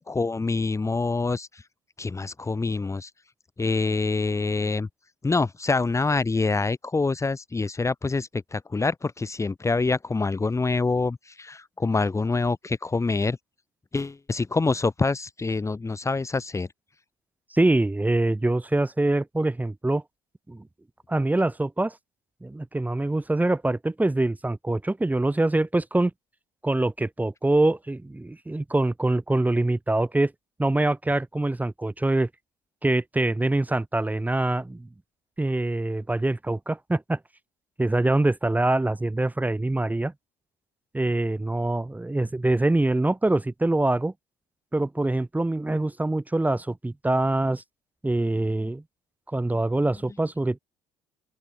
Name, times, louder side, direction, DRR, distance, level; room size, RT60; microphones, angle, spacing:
voice 1, 0.1-1.6 2.0-3.1 3.6-4.9 5.2-13.4 13.9-16.7, left 3 dB, 20° left, 3.0 m, -26 dB
voice 2, 17.5-20.0 20.5-20.6 21.1-22.0 22.4-26.1 26.6-30.3 30.6-32.3 32.8-34.9 35.4-37.2 37.8-40.1 40.9-44.1 44.7-47.6 48.0-48.8 49.3-50.6, right 2 dB, 10° right, 2.3 m, -24 dB
open air
hypercardioid pair, 65°, 13 cm